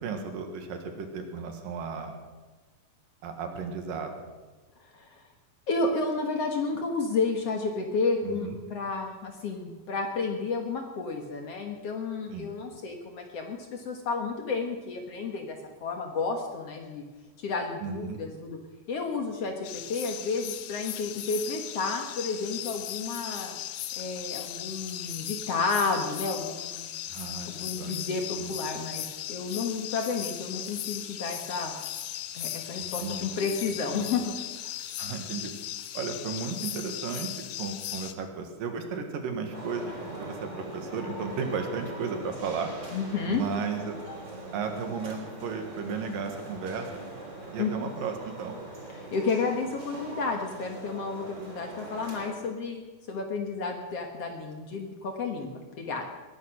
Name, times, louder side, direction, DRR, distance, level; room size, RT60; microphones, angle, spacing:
voice 1, 0.0-2.1 3.2-4.2 8.2-8.6 12.3-12.5 17.8-18.2 27.1-28.0 28.4-28.5 32.8-33.3 33.9-34.1 35.0-35.5 35.9-42.7 43.3-43.9 44.5-47.0 47.5-48.6, right 5 dB, 75° right, 5 dB, 3.3 m, -34 dB
voice 2, 4.8-5.2 5.7-15.6 15.8-17.0 17.4-18.6 18.9-23.5 24.0-26.9 27.5-31.7 32.3-34.7 42.9-43.4 47.6-47.7 49.1-52.8 53.1-56.1, left 4 dB, 55° left, 3 dB, 2.1 m, -31 dB
sound 1, 19.6-38.1, left 13 dB, 75° left, 1.9 m, -37 dB
sound 2, 39.5-52.4, right 2 dB, 30° right, 4.9 m, -42 dB
20.5 x 11.0 x 6.4 m, 1.3 s
omnidirectional pair, 4.0 m